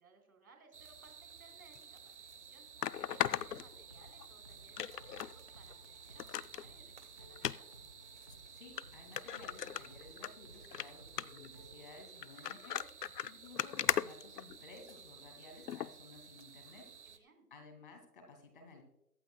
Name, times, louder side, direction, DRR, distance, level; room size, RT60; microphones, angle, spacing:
voice 1, 0.0-2.7 3.1-7.7 16.7-17.5, right 4 dB, 65° right, 3 dB, 3.7 m, -64 dB
sound 1, 0.7-17.2, right 6 dB, 45° right, 0.9 m, -55 dB
sound 2, 1.7-1.8 2.8-4.3 4.8-5.3 5.7-5.8 6.2-6.6 7.4-7.6 8.3-8.4 8.8-8.9 9.2-10.3 10.6-10.9 11.2-11.5 12.2-14.9 15.7-15.9 16.4-16.5, left 9 dB, 80° left, 0.6 m, -37 dB
sound 3, 2.9-12.0, equal, 20° right, 0.7 m, -60 dB
voice 2, 8.5-16.9 17.5-18.8, left 3 dB, 35° left, 4 dB, 2.3 m, -56 dB
22.5 x 8.8 x 2.2 m, 0.83 s
figure-of-eight pair, 165°, 47 cm